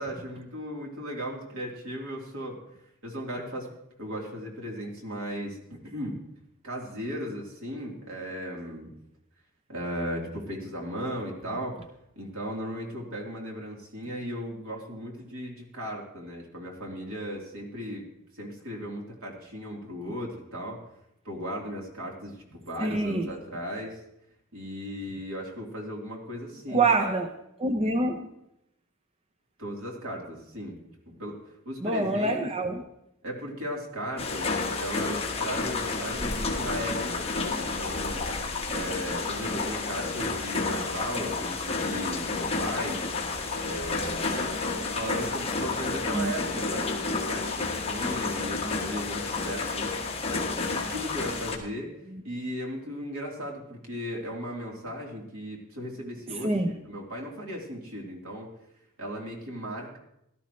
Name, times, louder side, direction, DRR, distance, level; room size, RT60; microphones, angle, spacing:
voice 1, 0.0-2.6 3.0-3.7 4.0-6.2 6.6-8.9 9.7-11.8 12.2-18.1 18.3-20.8 21.3-24.0 24.5-27.1 29.6-30.8 31.1-31.4 31.7-32.4 33.2-38.2 38.7-43.0 43.6-44.5 44.9-49.9 50.3-51.9 52.2-58.5 59.0-60.0, equal, 75° right, -1 dB, 3.5 m, -36 dB
voice 2, 22.8-23.3 26.7-27.3 27.6-28.3 31.8-32.9 46.1-46.3 52.1-52.2 56.3-56.7, right 2 dB, 25° right, 6 dB, 0.7 m, -26 dB
sound 1, 34.2-51.6, left 3 dB, 25° left, 1.9 m, -30 dB
17.5 x 12.5 x 3.2 m, 0.81 s
head